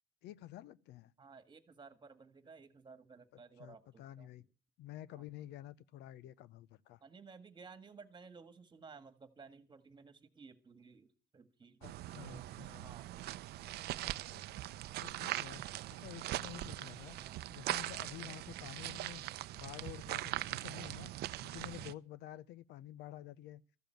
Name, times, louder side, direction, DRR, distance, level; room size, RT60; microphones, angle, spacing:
voice 1, 0.2-1.1 3.6-4.5 4.8-7.0 11.8-12.9 14.0-14.6 15.0-19.2 19.5-21.1 21.4-23.6, left 13 dB, 85° left, 0.6 m, -51 dB
voice 2, 1.2-4.3 7.0-11.1 11.3-11.9 12.2-13.1 17.2-17.4, right 5 dB, 25° right, 1.8 m, -56 dB
sound 1, 11.8-21.9, right 15 dB, 70° right, 0.6 m, -41 dB
14.0 x 7.0 x 9.1 m
cardioid pair, 110°, 17 cm